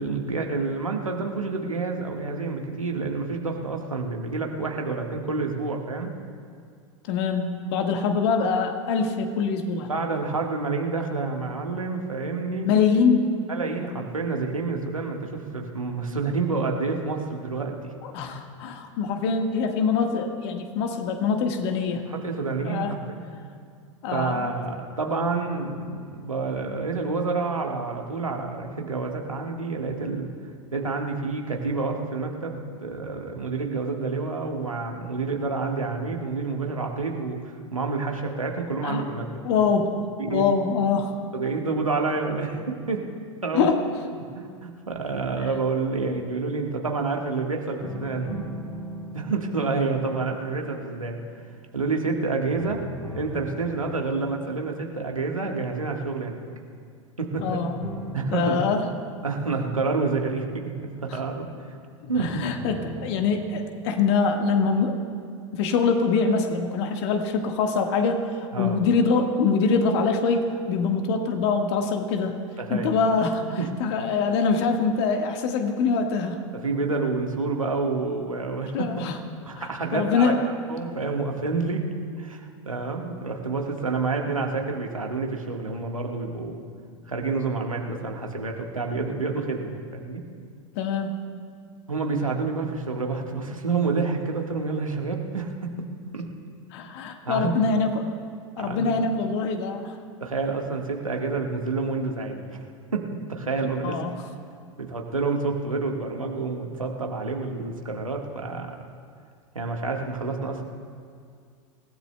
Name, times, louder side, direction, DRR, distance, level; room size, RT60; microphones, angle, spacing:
voice 1, 0.0-6.1 9.9-12.7 13.5-17.9 22.1-23.5 24.1-30.3 30.7-39.6 40.2-40.4 41.3-43.1 43.4-43.7 44.3-48.4 49.1-51.2 51.7-56.5 57.2-57.6 58.1-58.7 59.2-61.7 62.1-62.5 68.5-68.8 72.6-72.9 73.6-73.7 76.6-79.0 79.4-80.3 80.7-81.9 82.2-86.7 87.1-90.2 91.9-95.9 96.1-96.3 97.2-97.6 98.6-98.9 100.2-102.6 102.9-104.0 104.8-108.8 109.5-110.6, right 4 dB, 90° right, 1 dB, 1.5 m, -28 dB
voice 2, 7.1-9.9 12.6-13.4 18.0-22.0 22.6-22.9 24.0-24.5 38.8-39.0 39.4-39.9 40.3-41.1 43.5-43.8 57.4-57.7 58.3-58.8 62.0-65.0 65.5-68.2 68.6-72.4 72.7-76.4 78.7-79.2 79.5-80.4 90.7-91.1 96.7-98.1 98.6-100.0 103.8-104.1, left 5 dB, 55° left, 4 dB, 1.5 m, -24 dB
sound 1, 47.8-52.2 52.6-55.9 57.4-61.4 62.1-64.3, left 1 dB, 15° left, 2.9 m, -40 dB
27.0 x 16.0 x 2.2 m, 2.2 s
figure-of-eight pair, 90°, 17 cm